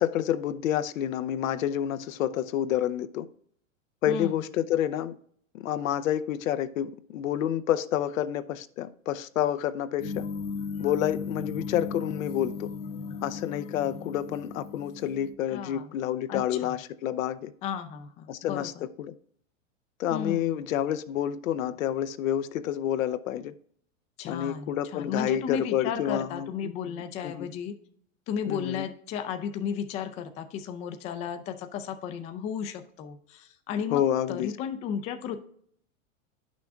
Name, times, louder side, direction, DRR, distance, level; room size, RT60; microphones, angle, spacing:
voice 1, 0.0-3.3 4.0-5.1 5.5-10.2 10.8-12.7 13.2-17.5 18.3-18.7 19.0-19.1 20.0-23.5 24.3-26.5 26.9-27.5 28.5-28.9 33.9-34.5, left 11 dB, 85° left, 0.6 m, -29 dB
voice 2, 4.1-4.5 15.5-15.9 16.3-16.7 17.6-18.9 20.1-20.6 24.2-27.7 28.3-35.4, left 7 dB, 20° left, 0.3 m, -34 dB
sound 1, 10.0-15.3, left 5 dB, 35° left, 0.8 m, -36 dB
10.0 x 6.1 x 2.4 m
hypercardioid pair, 130°, 39 cm